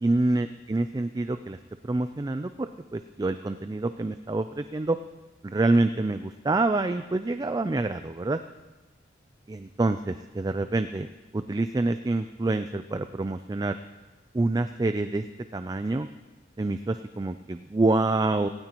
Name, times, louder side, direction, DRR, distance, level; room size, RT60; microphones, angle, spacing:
voice 1, 0.0-1.6 1.8-5.0 5.4-8.4 9.5-11.1 11.3-13.8 14.3-15.2 15.5-16.1 16.6-18.5, right 2 dB, 20° right, 10 dB, 0.3 m, -27 dB
18.0 x 16.5 x 3.0 m, 1.2 s
head